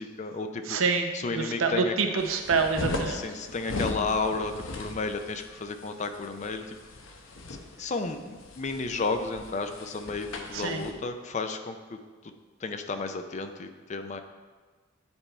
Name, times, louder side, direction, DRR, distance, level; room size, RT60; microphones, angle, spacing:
voice 1, 0.0-0.8 1.1-1.9 3.1-6.8 7.8-12.0 12.6-14.2, left 3 dB, 35° left, 7 dB, 0.4 m, -32 dB
voice 2, 0.7-3.2 10.5-10.8, right 4 dB, 85° right, 5 dB, 0.7 m, -27 dB
sound 1, 2.2-10.9, left 2 dB, 75° left, 0.8 m, -38 dB
9.6 x 3.4 x 4.4 m, 1.4 s
head